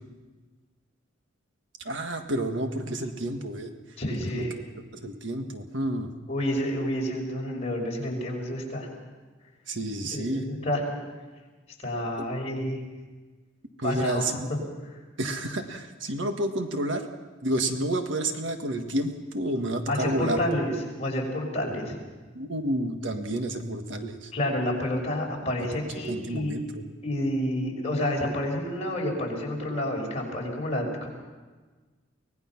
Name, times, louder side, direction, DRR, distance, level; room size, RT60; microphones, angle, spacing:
voice 1, 1.9-3.7 4.3-4.4 4.9-6.1 9.7-10.5 13.8-14.5 15.2-17.1 17.4-20.4 22.4-24.3 26.1-26.8, right 1 dB, 65° right, 5 dB, 1.7 m, -30 dB
voice 2, 4.0-4.6 6.3-8.9 10.1-10.8 11.8-12.8 13.8-14.6 19.9-21.9 24.3-26.6 27.0-31.1, left 1 dB, 35° left, -2 dB, 5.6 m, -29 dB
24.5 x 19.0 x 5.9 m, 1.3 s
head